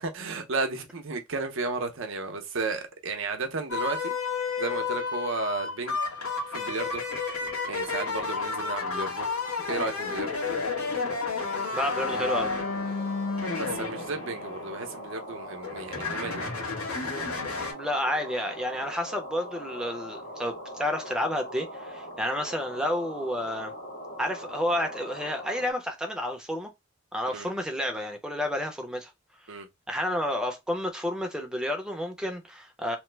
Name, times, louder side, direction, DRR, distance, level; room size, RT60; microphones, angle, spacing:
voice 1, 0.0-4.1 4.6-6.0 6.5-7.0 7.7-9.3 9.6-10.4 13.5-16.5 27.3-27.5 29.5-29.7, right 3 dB, 65° right, 0.7 m, -33 dB
sound 1, 3.7-15.1 15.6-17.7, left 4 dB, 90° left, 1.3 m, -31 dB
voice 2, 11.7-12.5 17.4-23.7 24.2-26.7 27.1-29.1 29.9-33.0, left 1 dB, 5° right, 0.6 m, -30 dB
sound 2, 11.9-25.7, equal, 40° left, 1.0 m, -41 dB
3.0 x 2.0 x 3.2 m
head